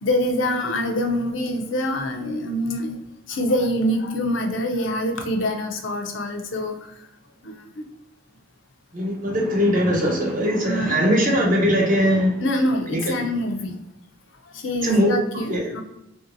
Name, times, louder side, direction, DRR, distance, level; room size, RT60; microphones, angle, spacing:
voice 1, 0.0-3.0 3.3-6.9 7.4-7.8 10.6-11.1 12.4-13.8 14.5-15.8, left 1 dB, 75° left, 4 dB, 0.5 m, -25 dB
voice 2, 8.9-12.4 12.9-13.1 14.8-15.1 15.5-15.6, equal, 45° right, -1 dB, 0.9 m, -20 dB
3.4 x 2.7 x 2.6 m, 0.86 s
head